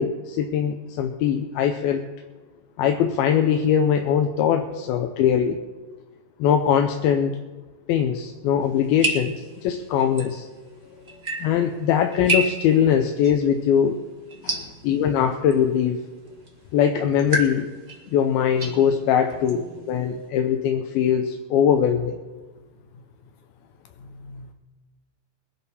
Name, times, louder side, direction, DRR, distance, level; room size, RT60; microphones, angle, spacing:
voice 1, 0.0-2.1 2.8-5.6 6.4-7.4 7.9-10.5 11.4-14.0 14.8-16.0 16.7-17.7 18.1-22.2, left 8 dB, 90° left, 2.6 m, -21 dB
sound 1, 8.6-20.3, right 1 dB, 35° right, 1.0 m, -33 dB
voice 2, 10.7-11.2 14.4-14.8 24.0-24.5, left 3 dB, 70° left, 2.4 m, -45 dB
21.0 x 11.0 x 4.2 m
omnidirectional pair, 4.2 m